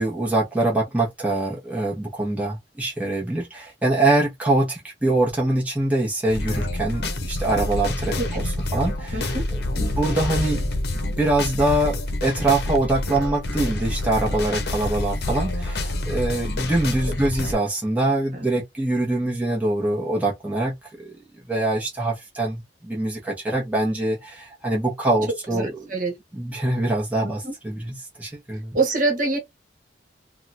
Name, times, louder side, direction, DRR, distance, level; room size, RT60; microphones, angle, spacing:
voice 1, 0.0-10.6 10.9-21.2 21.5-25.8 26.3-28.8, right 2 dB, 10° right, 1.0 m, -24 dB
sound 1, 6.3-17.5, left 1 dB, 60° left, 0.7 m, -27 dB
voice 2, 9.1-9.4 18.3-18.5 25.5-26.1 27.2-27.3 28.7-29.4, right 3 dB, 45° right, 1.3 m, -24 dB
3.6 x 2.3 x 2.7 m
head